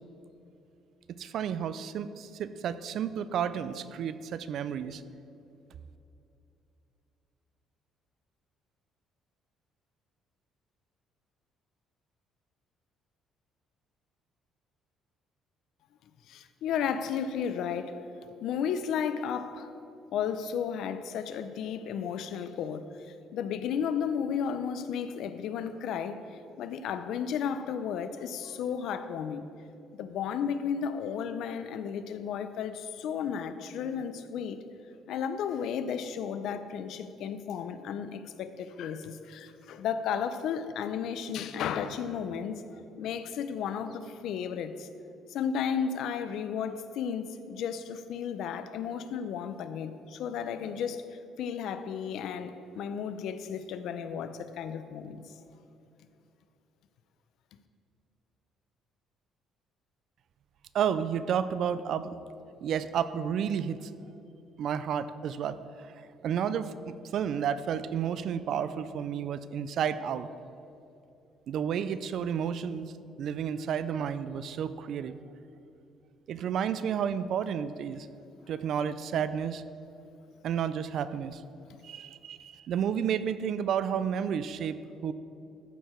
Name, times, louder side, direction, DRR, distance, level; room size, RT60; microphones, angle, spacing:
voice 1, 1.2-5.0 60.7-62.2 62.6-63.9 64.6-65.9 66.2-70.3 71.5-72.9 73.2-75.2 76.3-78.1 78.5-79.6 80.4-81.4 81.8-84.8 85.0-85.1, right 8 dB, 55° right, 0.3 m, -31 dB
voice 2, 16.3-18.0 18.4-19.7 20.1-26.2 26.6-29.5 29.9-34.6 35.1-44.9 45.3-51.1 51.4-55.2, left 7 dB, 65° left, 0.4 m, -33 dB
13.5 x 4.6 x 4.4 m
cardioid pair, 155°, 0 cm